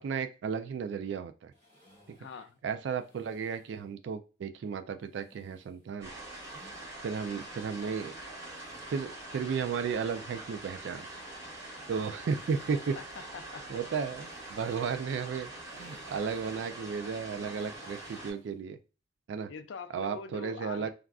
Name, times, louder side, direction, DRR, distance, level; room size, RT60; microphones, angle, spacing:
voice 1, 0.0-1.5 2.6-6.1 7.0-8.1 8.9-11.1 11.9-13.0 13.7-18.8 19.3-19.5 19.9-20.9, right 6 dB, 75° right, 8 dB, 0.3 m, -34 dB
sound 1, 1.5-3.9 5.0-6.8 7.3-9.3 10.7-18.6, equal, 40° right, 1.5 m, -63 dB
voice 2, 2.2-2.6 7.2-7.4 13.0-13.6 19.5-20.9, left 5 dB, 80° left, 10 dB, 0.4 m, -44 dB
sound 2, 6.0-18.3, right 2 dB, 20° right, 1.6 m, -44 dB
3.5 x 2.4 x 2.3 m, 0.33 s
head